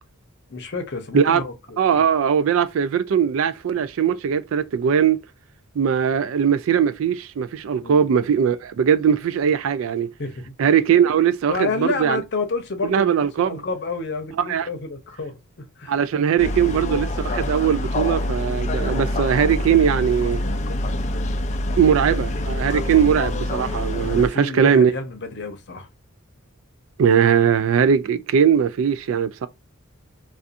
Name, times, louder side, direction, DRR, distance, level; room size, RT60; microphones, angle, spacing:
voice 1, 0.5-2.0 7.8-8.1 10.2-10.5 11.5-15.9 16.3-16.8 19.7-19.9 20.2-21.3 21.6-22.2 22.7-23.0 24.1-25.9, left 3 dB, 55° left, 0.7 m, -31 dB
voice 2, 1.8-5.2 5.8-10.1 10.6-12.2 12.8-13.6 14.4-14.7 15.9-20.4 21.8-24.9 27.0-29.5, right 7 dB, 65° right, 0.3 m, -20 dB
sound 1, 16.4-24.3, left 1 dB, 35° left, 0.3 m, -26 dB
2.5 x 2.4 x 2.5 m
head